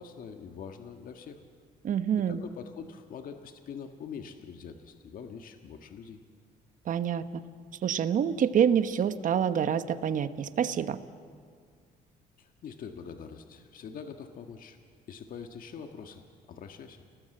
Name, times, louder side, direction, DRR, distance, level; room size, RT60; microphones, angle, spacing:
voice 1, 0.0-1.4 2.3-6.2 12.4-14.8 15.1-17.0, left 6 dB, 55° left, 5 dB, 1.7 m, -44 dB
voice 2, 1.8-2.4 6.9-7.2 7.8-11.0, right 8 dB, 50° right, 11 dB, 1.2 m, -26 dB
29.5 x 19.0 x 7.8 m, 2.1 s
cardioid pair, 110°, 17 cm